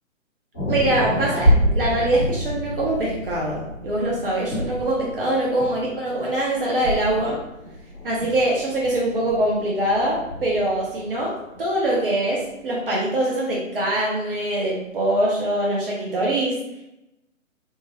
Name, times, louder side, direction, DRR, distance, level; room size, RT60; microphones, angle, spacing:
sound 1, 0.5-11.9 12.4-12.5, equal, 10° left, 0.5 m, -27 dB
voice 1, 0.7-7.4 8.0-16.6, right 1 dB, 45° right, -3 dB, 0.7 m, -23 dB
3.4 x 2.1 x 2.9 m, 0.90 s
figure-of-eight pair, 135°, 40 cm